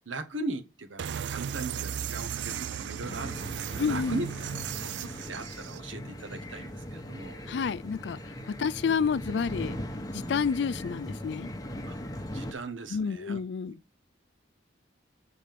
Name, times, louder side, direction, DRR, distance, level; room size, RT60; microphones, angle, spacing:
voice 1, 0.1-4.3 4.8-7.4 11.9-12.0 12.3-13.4, right 3 dB, 80° right, 1.1 m, -39 dB
sound 1, 1.0-5.8, right 8 dB, 65° right, 0.3 m, -36 dB
sound 2, 3.0-12.5, equal, 20° left, 1.0 m, -39 dB
voice 2, 3.8-4.3 7.5-9.8 10.1-11.5 12.9-13.8, left 6 dB, 60° left, 0.4 m, -30 dB
7.6 x 4.2 x 5.2 m
head